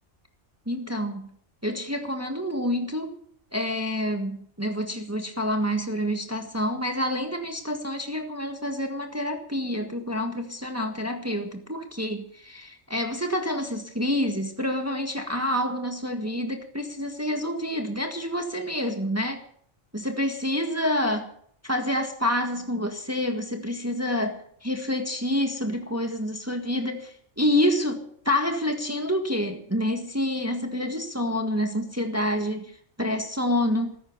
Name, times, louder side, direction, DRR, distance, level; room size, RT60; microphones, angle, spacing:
voice 1, 0.6-1.3 1.6-3.2 3.5-19.4 19.9-21.3 21.6-34.0, left 1 dB, 15° right, 4 dB, 1.7 m, -28 dB
15.5 x 14.0 x 5.4 m, 0.62 s
omnidirectional pair, 1.2 m